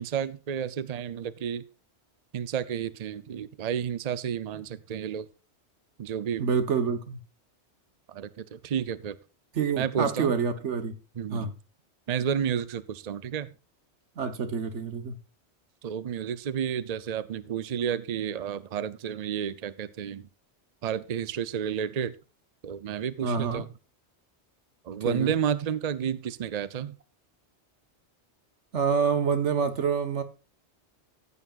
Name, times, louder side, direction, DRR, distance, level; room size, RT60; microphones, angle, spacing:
voice 1, 0.0-1.6 2.3-5.3 6.0-6.4 8.1-9.2 9.8-10.3 11.2-11.5 12.1-13.5 15.8-20.3 20.8-22.1 22.6-23.7 24.9-26.9, right 8 dB, 45° right, 15 dB, 0.6 m, -31 dB
voice 2, 6.4-7.2 9.5-10.9 11.3-11.5 14.2-15.2 23.2-23.6 25.0-25.3 28.7-30.2, right 6 dB, 90° right, 10 dB, 1.5 m, -27 dB
14.5 x 8.4 x 2.5 m, 0.32 s
omnidirectional pair, 1.2 m